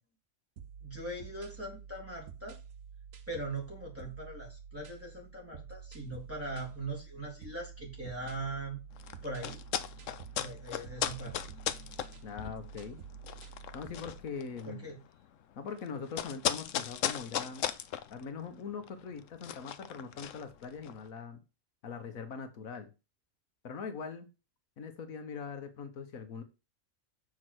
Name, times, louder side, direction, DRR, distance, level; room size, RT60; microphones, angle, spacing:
sound 1, 0.6-14.3, right 7 dB, 75° right, 1.4 m, -49 dB
voice 1, 0.8-2.6 3.3-8.8 9.2-9.6 10.3-11.4 14.6-15.0, right 2 dB, 10° right, -2 dB, 3.8 m, -40 dB
sound 2, 8.9-21.1, left 10 dB, 70° left, 1.0 m, -38 dB
voice 2, 12.2-13.0 13.7-14.9 15.6-17.6 18.1-21.4 21.8-22.9 23.6-24.3 24.8-26.4, left 5 dB, 90° left, 8 dB, 1.6 m, -42 dB
7.3 x 4.8 x 6.2 m, 0.29 s
omnidirectional pair, 1.4 m